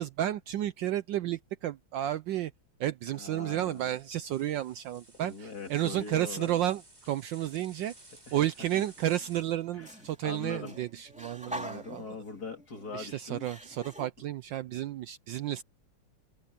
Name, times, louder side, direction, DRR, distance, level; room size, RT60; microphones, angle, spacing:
voice 1, 0.0-2.5 2.8-7.9 8.3-12.0 12.9-15.6, right 12 dB, 70° right, 1.2 m, -32 dB
voice 2, 3.1-3.9 5.2-6.6 8.3-8.4 8.7-8.8 9.7-9.9 10.2-10.8 11.5-13.5, left 4 dB, 45° left, 3.5 m, -42 dB
sound 1, 3.7-9.4, right 2 dB, 20° right, 3.1 m, -56 dB
sound 2, 8.0-8.5 8.9-14.1, equal, 5° right, 2.7 m, -46 dB
omnidirectional pair, 2.4 m